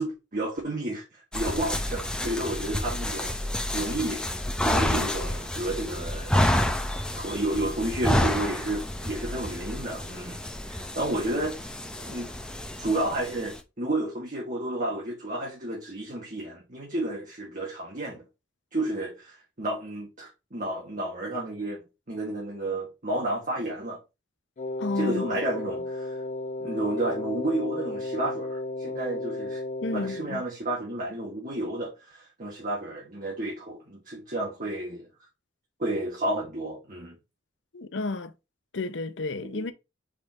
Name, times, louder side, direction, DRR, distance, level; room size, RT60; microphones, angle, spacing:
voice 1, 0.0-3.3 3.7-4.3 4.6-6.4 7.2-10.4 10.7-11.7 12.0-12.3 12.8-18.2 18.7-24.0 25.0-26.2 26.6-29.6 29.9-35.0 35.8-37.2 39.4-39.6, right 1 dB, 45° right, 1.7 m, -31 dB
sound 1, 1.3-13.6, left 1 dB, 5° left, 0.9 m, -29 dB
Wind instrument woodwind instrument, 24.6-30.3, left 2 dB, 40° left, 0.4 m, -34 dB
voice 2, 24.8-25.4 29.8-30.4 37.7-38.3 38.7-39.7, left 3 dB, 70° left, 0.8 m, -31 dB
5.1 x 4.4 x 4.3 m
head